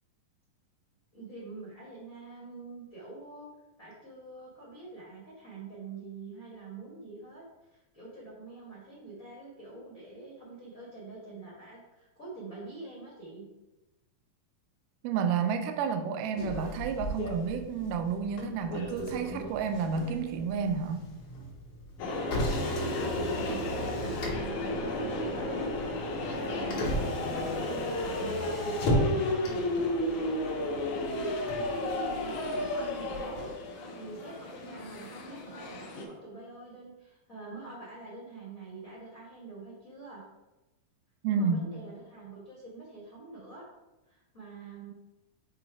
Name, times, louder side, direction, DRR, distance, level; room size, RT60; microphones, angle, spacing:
voice 1, 1.1-3.5 3.8-7.4 7.7-13.5 22.3-27.0 27.3-29.6 30.4-31.3 31.8-40.3 41.3-43.6 44.1-44.9, right 3 dB, 85° left, -6 dB, 0.7 m, -45 dB
voice 2, 15.0-21.1 41.2-41.7, right 6 dB, 80° right, 7 dB, 2.1 m, -30 dB
Motor vehicle (road), 16.4-33.5, equal, 50° left, 2.2 m, -37 dB
sound 1, 22.0-36.0, left 2 dB, 70° left, 2.0 m, -33 dB
6.9 x 3.1 x 4.6 m, 1.0 s
omnidirectional pair, 4.1 m